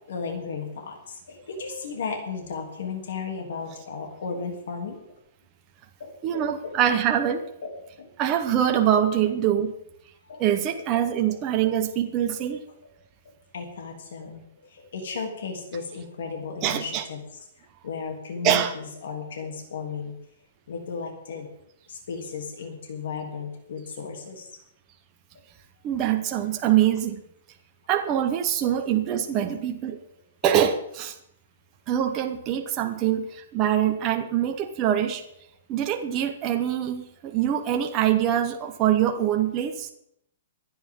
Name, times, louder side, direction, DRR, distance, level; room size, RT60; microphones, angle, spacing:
voice 1, 0.1-5.2 6.0-6.8 7.3-8.1 10.3-10.4 10.8-11.4 11.6-11.7 13.5-17.2 17.8-20.1 20.7-21.5 21.9-24.5, left 5 dB, 65° left, 2 dB, 3.0 m, -35 dB
voice 2, 6.2-7.4 8.2-9.7 10.4-12.6 16.6-17.0 18.4-18.7 25.8-27.2 27.9-30.0 30.4-31.1 31.9-35.2 35.7-39.9, right 10 dB, 20° right, 4 dB, 1.0 m, -24 dB
24.0 x 9.2 x 3.8 m, 0.74 s
hypercardioid pair, 165°, 0 cm